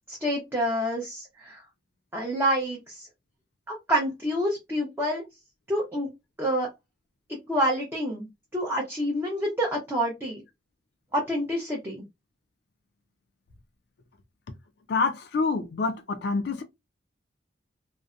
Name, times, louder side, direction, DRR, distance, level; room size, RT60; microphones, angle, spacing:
voice 1, 0.1-1.6 2.1-3.1 3.7-5.2 5.7-6.1 6.4-6.7 7.5-8.3 8.5-10.4 11.1-12.0, equal, 10° right, 0.6 m, -27 dB
voice 2, 14.9-16.6, left 4 dB, 60° left, 0.3 m, -27 dB
2.6 x 2.0 x 2.3 m
head